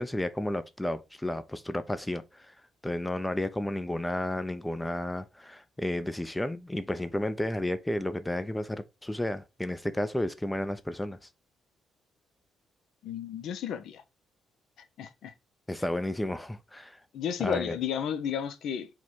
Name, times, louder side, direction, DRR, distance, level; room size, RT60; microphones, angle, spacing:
voice 1, 0.0-2.5 2.8-11.2 15.7-17.0 17.4-17.8, left 1 dB, 10° left, 0.4 m, -32 dB
voice 2, 13.0-14.0 15.0-15.3 17.1-18.9, left 8 dB, 75° left, 0.5 m, -32 dB
4.5 x 2.2 x 4.0 m
cardioid pair, 90°, 0 cm